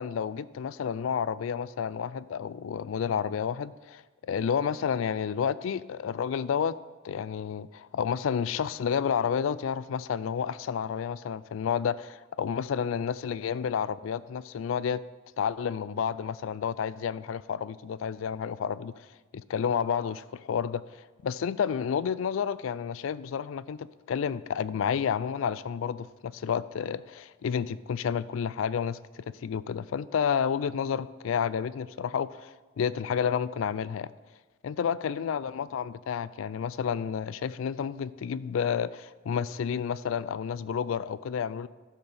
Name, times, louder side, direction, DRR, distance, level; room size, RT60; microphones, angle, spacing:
voice 1, 0.0-6.7 7.0-15.0 15.4-19.1 19.3-20.8 21.2-34.1 34.6-41.7, left 7 dB, 70° left, 17 dB, 0.3 m, -30 dB
11.5 x 4.4 x 6.8 m, 1.3 s
head